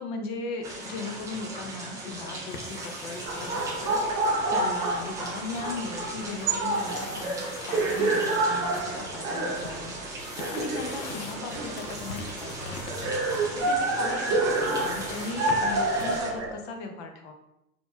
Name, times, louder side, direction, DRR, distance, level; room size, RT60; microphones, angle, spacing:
voice 1, 0.0-4.0 4.5-9.9 10.5-13.1 13.5-17.3, left 4 dB, 45° left, 4 dB, 0.8 m, -38 dB
sound 1, 0.6-16.3, right 2 dB, 10° right, 0.3 m, -39 dB
sound 2, 2.5-16.2, left 4 dB, 90° left, 0.7 m, -45 dB
sound 3, 3.2-16.5, right 2 dB, 40° right, 0.8 m, -29 dB
4.0 x 2.9 x 2.2 m, 0.88 s
hypercardioid pair, 105°, 46 cm